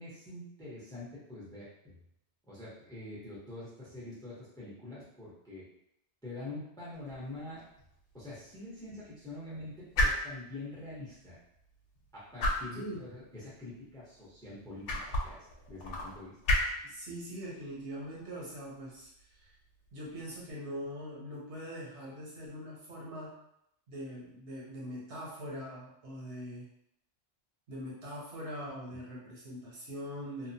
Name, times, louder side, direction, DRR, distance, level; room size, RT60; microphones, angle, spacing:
voice 1, 0.0-1.9 2.5-5.7 6.2-7.6 8.1-11.4 12.1-15.4 15.7-16.4, left 2 dB, 5° left, -7 dB, 0.6 m, -45 dB
sound 1, 6.9-20.5, left 1 dB, 85° left, 0.9 m, -37 dB
voice 2, 16.9-19.5 19.9-23.4 23.9-26.7 27.7-30.5, equal, 70° right, -5 dB, 1.1 m, -42 dB
2.9 x 2.1 x 2.6 m, 0.76 s
omnidirectional pair, 1.2 m